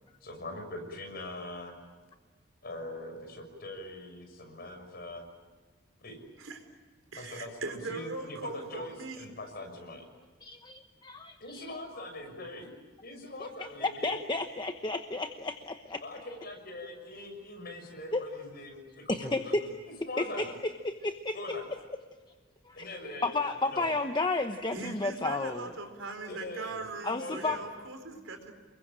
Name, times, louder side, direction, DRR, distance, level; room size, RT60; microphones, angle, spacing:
voice 1, 0.2-1.8 2.6-5.2 6.0-6.2 7.2-10.1 11.4-12.7 13.0-14.2 16.0-20.5 21.3-21.7 22.7-23.9 26.2-26.8 27.2-27.6, left 1 dB, 50° left, 3 dB, 6.4 m, -42 dB
voice 2, 7.1-9.3 24.7-28.5, right 3 dB, 75° right, 6 dB, 4.5 m, -40 dB
voice 3, 10.4-11.7 13.4-16.0 18.1-18.2 19.1-19.7 20.2-20.5 20.8-21.4 22.7-22.9 23.2-25.7 27.0-27.6, left 2 dB, 20° left, 7 dB, 1.0 m, -32 dB
29.0 x 22.0 x 8.9 m, 1.4 s
head